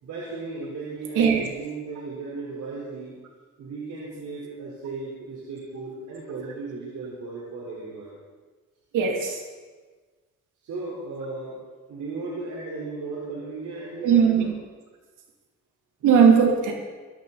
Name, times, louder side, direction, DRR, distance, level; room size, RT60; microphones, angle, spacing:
voice 1, 0.0-3.2 3.6-8.2 10.6-11.6 11.9-14.5, right 3 dB, 70° right, -6 dB, 4.3 m, -36 dB
voice 2, 1.1-1.5 8.9-9.4 14.0-14.5 16.0-16.7, right 6 dB, 85° right, 1 dB, 2.7 m, -18 dB
21.5 x 12.0 x 4.1 m, 1.4 s
cardioid pair, 90°, 30 cm